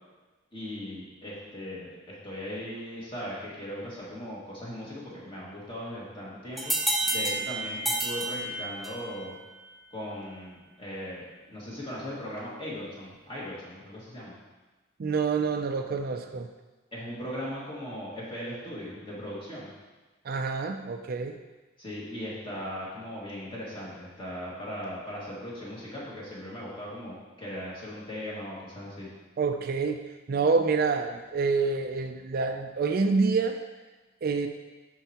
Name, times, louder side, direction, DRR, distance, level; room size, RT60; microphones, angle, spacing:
voice 1, 0.5-6.7 7.0-9.4 9.9-14.3 16.9-19.7 21.8-29.1, equal, 25° left, -6 dB, 2.0 m, -38 dB
sound 1, 6.6-9.1, right 1 dB, ahead, 0.8 m, -29 dB
voice 2, 15.0-16.5 20.2-21.4 29.4-30.0 30.3-33.6 34.2-34.5, right 4 dB, 50° right, 6 dB, 0.4 m, -27 dB
11.0 x 4.6 x 2.9 m, 1.2 s
head